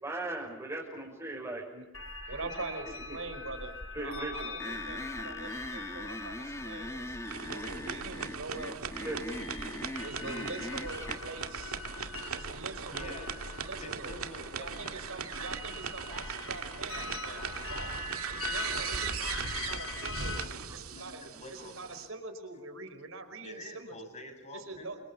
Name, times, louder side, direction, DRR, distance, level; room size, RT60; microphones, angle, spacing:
voice 1, 0.0-1.7 2.2-2.4 3.1-3.2 3.9-4.5 9.0-9.3 20.7-20.8, right 2 dB, 15° right, -3 dB, 5.9 m, -38 dB
sound 1, 1.9-20.5, left 3 dB, 70° left, 3.1 m, -43 dB
voice 2, 2.3-7.2 7.5-9.2 9.6-9.7 10.0-11.8 12.3-13.2 13.5-14.2 14.6-17.9 18.3-21.2 21.5-23.9 24.5-25.0, right 3 dB, 70° right, 8 dB, 5.2 m, -44 dB
sound 2, 4.6-11.2, left 1 dB, 15° left, 1.6 m, -40 dB
sound 3, 7.2-22.1, right 6 dB, 85° right, 2.2 m, -39 dB
voice 3, 12.9-13.3 13.8-16.3 16.9-18.3 20.8-21.8 23.4-24.9, left 1 dB, 35° left, 4 dB, 7.8 m, -48 dB
29.5 x 26.0 x 7.2 m, 1.0 s
head